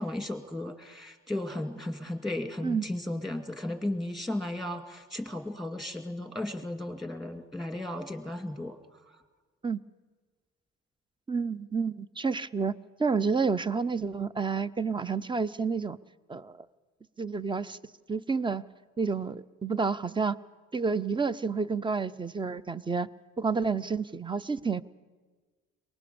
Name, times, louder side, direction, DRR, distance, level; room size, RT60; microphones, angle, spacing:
voice 1, 0.0-8.8, left 1 dB, ahead, 6 dB, 2.3 m, -35 dB
voice 2, 11.3-12.7 13.0-16.0 16.3-16.7 17.2-17.8 18.1-18.6 19.0-20.4 20.7-23.1 23.4-24.8, right 5 dB, 15° right, 16 dB, 0.6 m, -29 dB
23.0 x 20.0 x 7.0 m, 1.4 s
cardioid pair, 90°, 30 cm